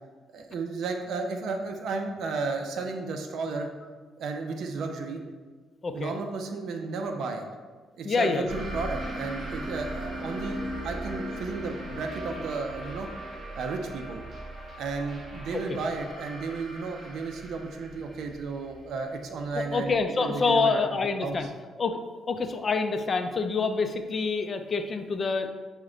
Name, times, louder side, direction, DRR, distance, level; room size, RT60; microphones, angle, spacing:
voice 1, 0.3-3.7 4.2-5.2 5.9-7.5 8.0-10.6 10.8-13.1 13.6-14.2 14.8-21.5, right 4 dB, 70° right, 4 dB, 0.4 m, -33 dB
voice 2, 8.0-8.5 15.5-15.8 19.5-21.5 21.8-22.0 22.3-25.5, left 4 dB, 40° left, 6 dB, 0.4 m, -27 dB
sound 1, 8.5-19.7, right 1 dB, 40° right, 1.3 m, -38 dB
5.8 x 2.1 x 3.7 m, 1.4 s
cardioid pair, 90°, 0 cm